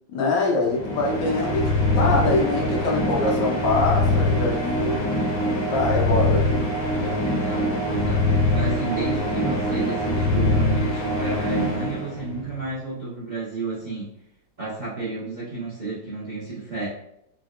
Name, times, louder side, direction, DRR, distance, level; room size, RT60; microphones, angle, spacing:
voice 1, 0.1-5.1 5.7-6.6 7.0-7.2, left 3 dB, 85° left, -1 dB, 1.6 m, -24 dB
sound 1, 0.7-12.6, left 1 dB, 50° left, 1.6 m, -23 dB
voice 2, 7.2-14.1 14.6-16.9, right 3 dB, 70° right, -7 dB, 0.4 m, -31 dB
3.8 x 2.1 x 2.4 m, 0.76 s
omnidirectional pair, 2.0 m